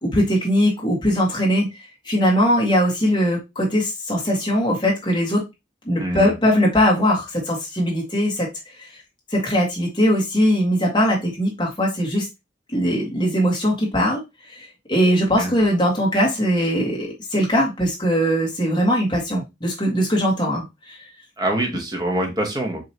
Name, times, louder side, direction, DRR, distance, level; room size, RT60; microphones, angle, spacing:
voice 1, 0.0-1.7 2.0-5.4 5.8-8.5 8.8-8.9 9.3-12.3 12.7-14.2 14.5-21.0, equal, 25° left, -3 dB, 1.7 m, -20 dB
voice 2, 6.0-6.3 15.4-15.5 21.4-22.9, right 1 dB, 20° right, 2 dB, 1.1 m, -24 dB
5.0 x 2.9 x 2.9 m, 0.22 s
head